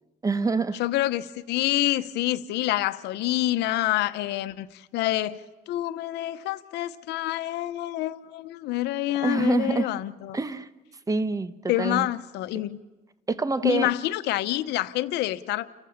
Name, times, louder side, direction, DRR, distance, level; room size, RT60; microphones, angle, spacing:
voice 1, 0.2-0.8 9.2-9.9 10.3-10.7 11.1-12.1 13.3-13.9, right 3 dB, 20° right, 1.1 m, -26 dB
voice 2, 0.8-5.4 5.7-10.4 11.7-12.8 13.6-15.7, left 15 dB, 85° left, 0.9 m, -27 dB
30.0 x 14.5 x 7.2 m
cardioid pair, 110°, 17 cm